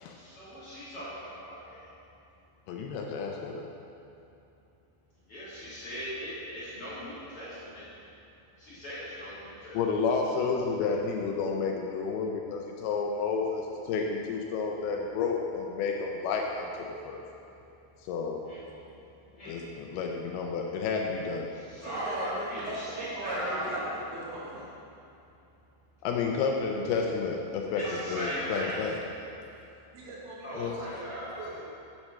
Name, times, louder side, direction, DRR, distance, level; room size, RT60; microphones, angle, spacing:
voice 1, 0.1-1.9 5.3-7.9 8.6-9.8 18.5-18.6 19.4-19.6 21.5-23.7 27.7-28.8 30.4-31.5, equal, 45° left, -11 dB, 2.2 m, -38 dB
voice 2, 2.7-3.7 9.7-16.7 17.1-17.2 18.0-18.4 19.5-21.5 26.0-29.0 30.5-30.8, left 5 dB, 85° left, 1 dB, 2.2 m, -31 dB
voice 3, 21.8-24.7 27.8-28.5 29.5-29.6 29.9-31.6, right 1 dB, 80° right, -7 dB, 4.0 m, -39 dB
9.1 x 5.9 x 5.6 m, 2.7 s
omnidirectional pair, 5.1 m